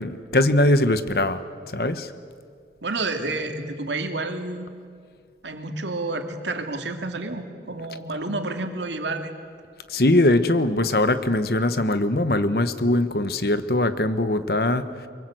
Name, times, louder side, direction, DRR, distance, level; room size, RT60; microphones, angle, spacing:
voice 1, 0.0-1.4 1.7-2.1 9.9-14.9, left 1 dB, 60° left, 11 dB, 1.1 m, -21 dB
voice 2, 2.8-4.7 5.4-9.4, right 2 dB, 90° right, 5 dB, 2.5 m, -30 dB
24.0 x 23.0 x 7.8 m, 2.2 s
head